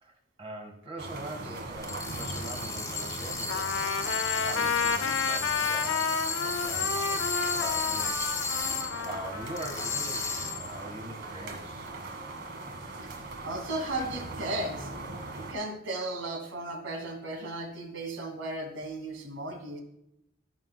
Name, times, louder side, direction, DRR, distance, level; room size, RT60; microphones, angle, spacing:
voice 1, 0.0-4.0 4.4-8.4 9.0-11.9, right 1 dB, 30° right, 2 dB, 1.7 m, -43 dB
sound 1, 1.0-15.5, right 2 dB, 55° right, 1.6 m, -40 dB
sound 2, 1.8-9.2 9.6-10.7, left 4 dB, 15° left, 1.1 m, -34 dB
Trumpet, 3.5-10.6, left 5 dB, 70° left, 0.6 m, -31 dB
voice 2, 13.4-14.9 15.4-19.8, right 2 dB, 70° right, 3 dB, 2.2 m, -35 dB
15.5 x 6.9 x 2.2 m, 0.84 s
head